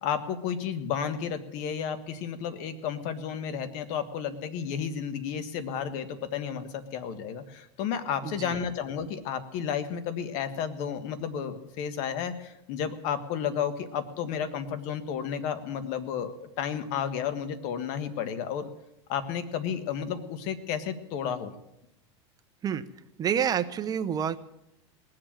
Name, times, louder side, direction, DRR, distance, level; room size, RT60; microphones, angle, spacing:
voice 1, 0.0-18.7 19.1-21.5, left 8 dB, 55° left, 10 dB, 1.6 m, -32 dB
voice 2, 8.2-8.6 22.6-22.8 23.2-24.4, right 8 dB, 25° right, 10 dB, 0.9 m, -28 dB
19.5 x 7.8 x 7.4 m, 0.84 s
supercardioid pair, 125°, 15 cm